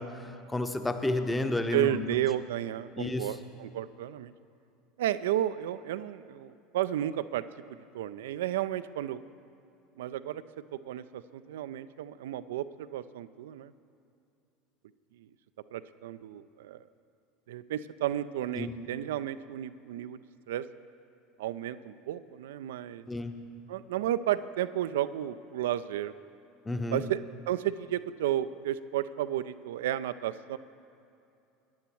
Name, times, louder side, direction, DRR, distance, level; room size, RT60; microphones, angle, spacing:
voice 1, 0.0-2.2 3.0-3.3 18.6-18.7 23.1-23.3 26.6-27.0, left 2 dB, 10° left, 7 dB, 0.8 m, -31 dB
voice 2, 1.7-4.3 5.0-7.4 7.9-9.2 10.0-10.4 10.7-13.7 15.2-15.3 15.7-16.8 17.5-20.2 20.5-20.6 21.4-23.1 23.7-26.1 26.9-27.2 27.5-30.6, right 12 dB, 70° right, 13 dB, 0.3 m, -32 dB
19.0 x 10.5 x 3.0 m, 2.6 s
figure-of-eight pair, 70°, 0 cm